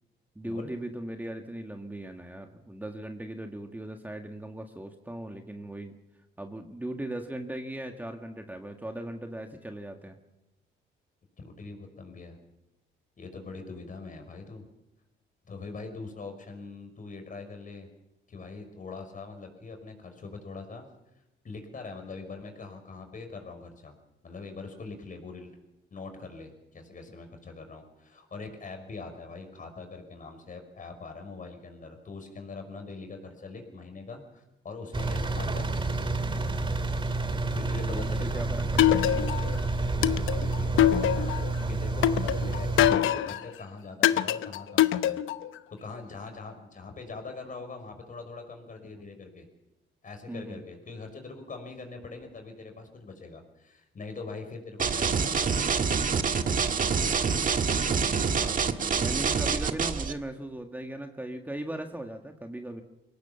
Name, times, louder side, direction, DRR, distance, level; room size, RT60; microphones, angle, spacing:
voice 1, 0.4-6.0 6.4-10.2 37.9-39.3 48.9-49.0 50.3-50.6 58.0-62.8, right 1 dB, 10° right, 4 dB, 1.8 m, -38 dB
voice 2, 11.4-12.4 13.2-14.6 15.4-17.9 18.3-20.9 21.4-24.0 24.2-25.5 25.9-35.7 37.2-38.5 39.8-45.2 45.7-49.5 50.0-56.0, left 3 dB, 40° left, 5 dB, 5.5 m, -43 dB
Engine, 34.9-43.0, right 2 dB, 25° right, 2.3 m, -29 dB
sound 1, 38.8-39.5 40.0-41.5 42.0-43.4 44.0-45.5, left 12 dB, 80° left, 0.8 m, -23 dB
sound 2, 54.8-60.1, right 5 dB, 40° right, 1.6 m, -26 dB
23.0 x 18.0 x 7.2 m, 0.92 s
cardioid pair, 90°, 20 cm